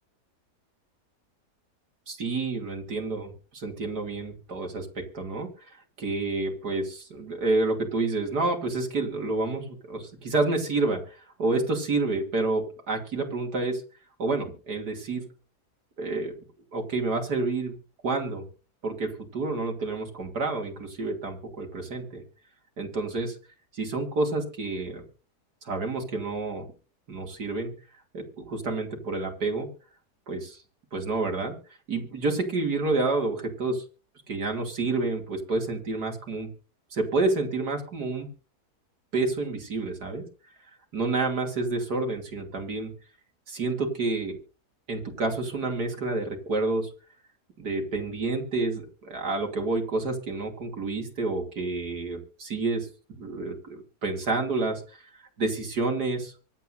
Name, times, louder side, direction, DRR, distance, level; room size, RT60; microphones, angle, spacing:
voice 1, 2.1-5.5 6.0-13.8 14.2-15.3 16.0-16.3 16.7-17.8 18.0-18.4 18.8-22.2 22.8-23.4 23.7-25.0 25.6-26.7 27.1-27.7 28.1-29.7 30.3-30.6 30.9-31.5 31.9-33.8 34.3-36.5 36.9-38.3 39.1-40.2 40.9-42.9 43.5-44.4 44.9-46.9 47.6-52.9 53.2-55.0 55.4-56.3, right 3 dB, 80° right, 2 dB, 3.4 m, -29 dB
24.5 x 8.2 x 2.7 m, 0.35 s
omnidirectional pair, 1.7 m